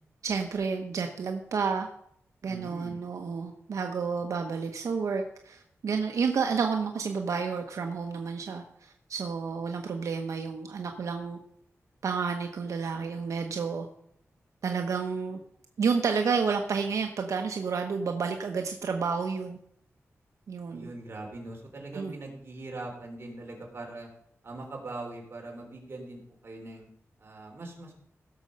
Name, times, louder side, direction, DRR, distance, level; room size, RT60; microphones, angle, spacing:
voice 1, 0.2-1.9 2.4-11.4 12.0-13.9 14.6-15.4 15.8-19.6 20.5-20.9 21.9-22.1, right 5 dB, 85° right, 4 dB, 1.0 m, -30 dB
voice 2, 2.4-3.0 20.7-24.1 24.4-26.9 27.2-27.9, right 2 dB, 45° right, 0 dB, 3.6 m, -41 dB
16.5 x 6.8 x 5.4 m, 0.70 s
wide cardioid pair, 120°, 5 cm